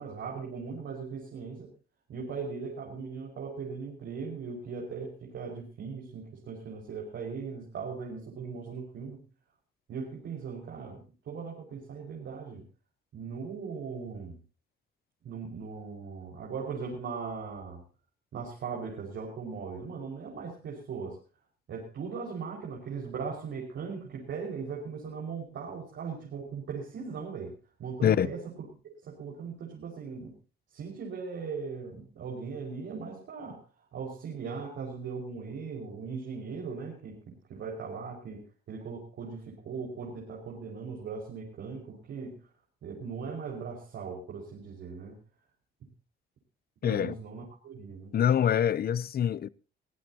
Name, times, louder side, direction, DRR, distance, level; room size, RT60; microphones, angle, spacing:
voice 1, 0.0-1.7 2.1-9.2 9.9-12.6 13.1-14.4 15.2-17.8 18.3-21.2 21.7-28.4 29.0-30.4 30.7-42.5 42.8-45.2 46.8-48.2, right 5 dB, 70° right, 5.5 m, -39 dB
voice 2, 46.8-47.1 48.1-49.5, left 9 dB, 50° left, 0.7 m, -25 dB
23.0 x 16.0 x 2.9 m
cardioid pair, 90°, 20 cm